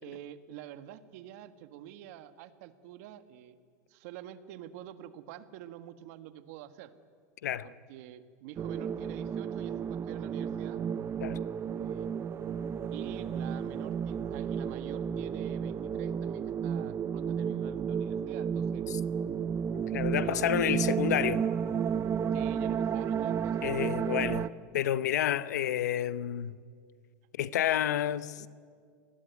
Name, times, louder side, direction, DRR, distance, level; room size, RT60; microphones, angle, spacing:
voice 1, 0.0-3.6 3.9-6.9 7.6-10.8 11.7-12.1 12.9-18.9 20.2-20.6 22.3-23.8 24.1-24.4, right 12 dB, 65° right, 1.8 m, -47 dB
sound 1, 8.6-24.5, right 7 dB, 30° right, 0.7 m, -32 dB
voice 2, 19.9-21.4 23.6-24.5 24.7-26.5 27.4-28.5, left 11 dB, 85° left, 0.9 m, -29 dB
28.0 x 20.5 x 9.5 m
supercardioid pair, 115°, 9 cm